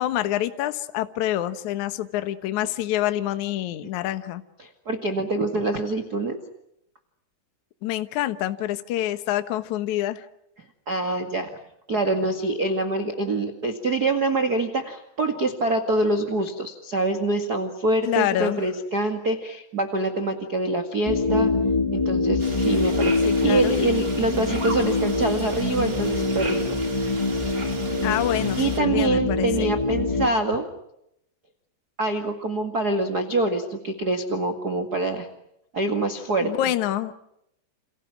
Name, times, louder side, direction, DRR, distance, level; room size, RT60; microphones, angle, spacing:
voice 1, 0.0-4.4 7.8-10.3 18.1-18.6 23.2-23.8 28.0-29.7 36.4-37.1, left 13 dB, 75° left, 11 dB, 1.8 m, -27 dB
voice 2, 4.6-6.4 10.8-11.5 11.9-21.5 21.9-26.8 28.6-30.7 32.0-35.3 35.7-36.5, right 2 dB, 50° right, 6 dB, 1.1 m, -25 dB
sound 1, 21.0-30.3, left 3 dB, 35° left, 0.4 m, -24 dB
sound 2, 22.4-28.8, right 3 dB, 20° right, 2.9 m, -37 dB
29.0 x 28.5 x 6.2 m, 0.79 s
omnidirectional pair, 5.3 m